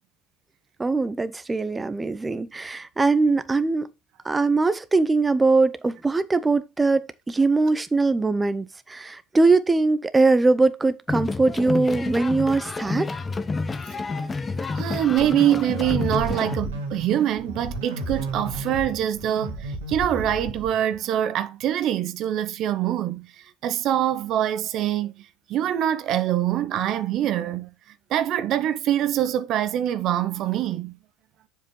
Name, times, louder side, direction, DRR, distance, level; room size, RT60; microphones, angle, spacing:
voice 1, 0.8-3.9 4.2-13.1, right 3 dB, 15° right, 0.6 m, -21 dB
sound 1, 11.1-16.5, left 3 dB, 20° left, 0.8 m, -29 dB
voice 2, 14.7-23.3 23.6-27.7 28.1-31.0, right 11 dB, 50° right, 0.6 m, -24 dB
sound 2, 15.2-21.0, right 2 dB, 85° right, 1.7 m, -33 dB
7.3 x 5.5 x 3.1 m
hypercardioid pair, 80°, 0 cm